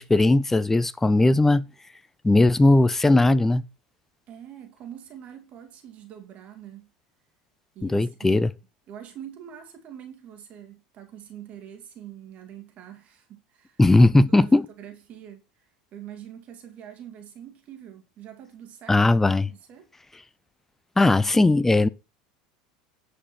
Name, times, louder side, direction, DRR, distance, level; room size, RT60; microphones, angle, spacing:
voice 1, 0.0-1.7 2.2-3.6 7.8-8.5 13.8-14.7 18.9-19.5 21.0-21.9, left 2 dB, 10° left, 0.6 m, -18 dB
voice 2, 4.3-6.9 7.7-8.5 8.9-13.8 14.4-19.1 19.5-19.9, right 10 dB, 45° right, 2.2 m, -44 dB
9.8 x 5.1 x 5.8 m
hypercardioid pair, 85°, 3 cm